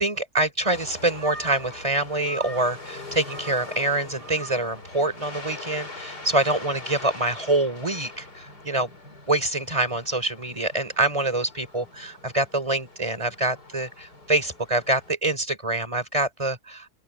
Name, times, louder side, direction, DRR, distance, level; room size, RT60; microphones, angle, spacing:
voice 1, 0.0-8.9 9.3-16.9, right 2 dB, 20° right, 3.9 m, -25 dB
sound 1, 0.7-15.1, left 1 dB, 85° left, 6.3 m, -41 dB
open air
omnidirectional pair, 1.7 m